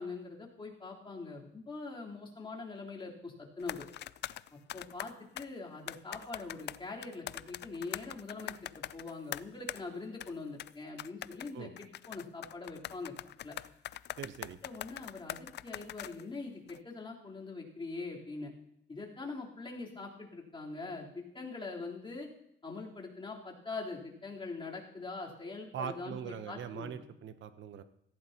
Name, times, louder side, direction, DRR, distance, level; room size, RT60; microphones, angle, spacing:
voice 1, 0.0-3.9 4.7-13.1 13.4-13.5 14.6-18.5 18.9-22.3 22.6-27.0, left 3 dB, 25° left, -4 dB, 3.7 m, -43 dB
sound 1, 3.6-5.5 5.9-9.8 10.2-10.3 10.6-10.7 11.0-16.2 16.7-16.8, left 12 dB, 60° left, 0.4 m, -43 dB
voice 2, 14.2-14.6 25.7-27.8, right 8 dB, 70° right, 11 dB, 0.9 m, -41 dB
17.5 x 15.5 x 2.9 m, 0.76 s
cardioid pair, 90°, 20 cm